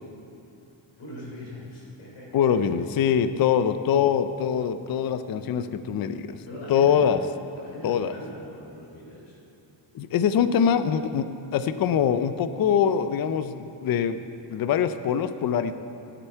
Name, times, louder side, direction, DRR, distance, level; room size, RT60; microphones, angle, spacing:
voice 1, 1.0-2.4 6.4-7.1 7.6-9.4, left 1 dB, 75° left, -4 dB, 3.4 m, -40 dB
voice 2, 2.3-6.4 6.7-7.2 7.8-8.1 9.9-11.3 11.5-14.2 14.5-15.7, left 8 dB, 50° left, 11 dB, 0.5 m, -23 dB
15.5 x 9.0 x 4.6 m, 2.7 s
wide cardioid pair, 145°, 46 cm